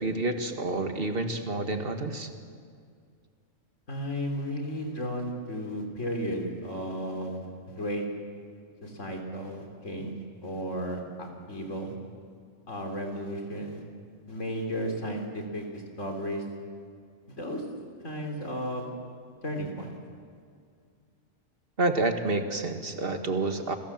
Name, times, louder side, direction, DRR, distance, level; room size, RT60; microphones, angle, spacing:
voice 1, 0.0-2.3 21.8-23.8, right 2 dB, 45° right, 6 dB, 2.0 m, -29 dB
voice 2, 3.9-8.0 8.8-10.1 10.4-11.9 12.7-13.8 14.3-16.4 17.3-17.6 18.0-18.9 19.4-19.9, equal, 70° left, 2 dB, 3.9 m, -34 dB
30.0 x 22.5 x 7.5 m, 2.2 s
omnidirectional pair, 1.3 m